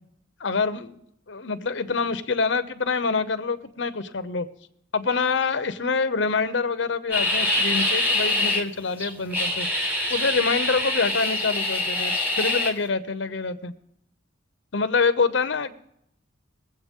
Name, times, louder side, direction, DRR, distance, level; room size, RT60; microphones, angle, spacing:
voice 1, 0.4-1.0 1.3-4.5 4.9-9.7 10.1-13.7 14.7-15.7, left 4 dB, 70° left, 11 dB, 0.8 m, -26 dB
sound 1, 7.1-8.6 9.0-12.7, left 2 dB, 10° right, 1.6 m, -24 dB
21.5 x 7.9 x 3.7 m, 0.77 s
head